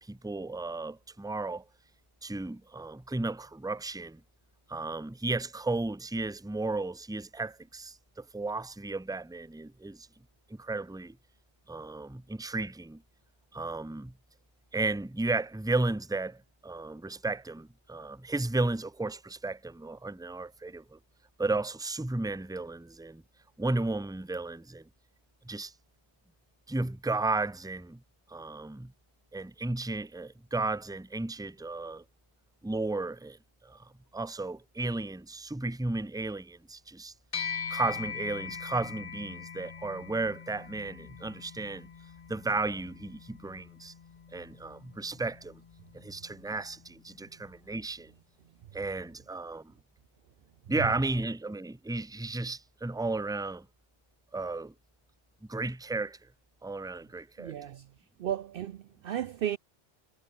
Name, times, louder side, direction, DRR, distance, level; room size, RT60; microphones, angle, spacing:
voice 1, 0.0-1.6 2.2-4.2 4.7-10.1 10.5-11.2 11.7-13.0 13.5-14.1 14.7-21.0 21.4-23.2 23.6-24.9 25.4-25.7 26.7-28.0 28.3-28.9 29.3-32.0 32.6-33.4 33.6-37.1 37.7-41.9 42.3-43.9 44.3-45.6 45.9-48.1 48.7-49.7 50.7-53.7 54.3-54.7 55.5-56.2 56.6-57.5, right 2 dB, 5° right, 0.8 m, -34 dB
sound 1, 37.3-46.9, left 6 dB, 40° left, 0.6 m, -42 dB
voice 2, 57.4-57.9 58.2-59.6, right 10 dB, 65° right, 0.7 m, -34 dB
omnidirectional pair, 1.1 m